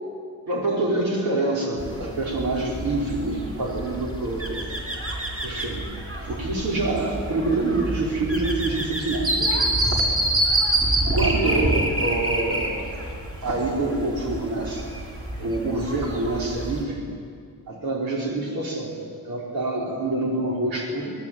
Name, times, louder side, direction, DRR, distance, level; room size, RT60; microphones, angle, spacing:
voice 1, 0.5-4.7 5.4-5.9 6.2-9.7 11.0-12.9 13.4-14.9 15.4-17.0 17.7-18.9 19.2-21.1, right 2 dB, 90° right, -3 dB, 5.2 m, -26 dB
sound 1, 1.8-16.8, right 1 dB, 40° right, 5.8 m, -27 dB
24.5 x 20.5 x 9.4 m, 2.3 s
wide cardioid pair, 120°, 34 cm